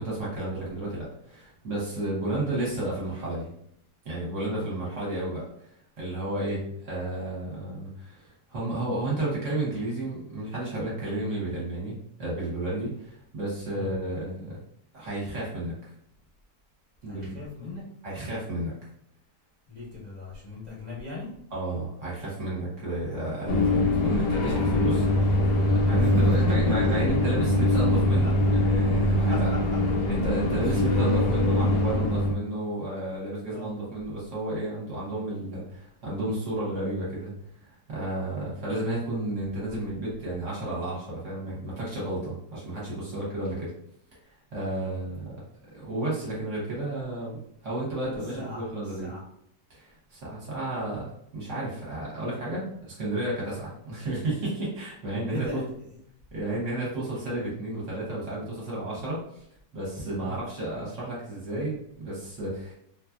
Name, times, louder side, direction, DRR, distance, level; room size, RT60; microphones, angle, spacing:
voice 1, 0.0-3.5 4.0-14.6 14.9-15.7 17.0-17.3 18.0-18.7 21.5-29.6 30.1-37.3 37.6-43.7 44.5-45.3 45.7-47.4 47.6-49.1 49.7-55.6 56.3-59.4 59.7-62.7, right 1 dB, 55° right, -6 dB, 1.1 m, -32 dB
voice 2, 17.1-17.8 19.7-21.3 25.9-26.9 28.2-28.5 29.3-29.6 30.6-30.8 33.5-33.7 44.8-45.0 48.0-49.2 53.7-53.8 55.3-56.0 60.2-60.3, left 2 dB, 40° left, -9 dB, 0.6 m, -37 dB
sound 1, 23.5-32.3, left 1 dB, 70° left, 0.9 m, -23 dB
2.7 x 2.4 x 2.3 m, 0.71 s
omnidirectional pair, 1.8 m